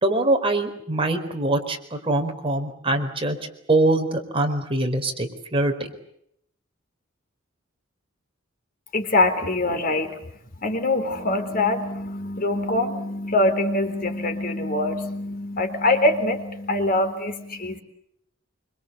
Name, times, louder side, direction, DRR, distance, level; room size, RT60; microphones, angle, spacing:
voice 1, 0.0-5.7, right 2 dB, 25° right, 4 dB, 4.4 m, -23 dB
voice 2, 8.9-10.2 10.6-17.8, left 2 dB, 45° left, 8 dB, 3.7 m, -24 dB
26.5 x 25.5 x 8.1 m, 0.73 s
head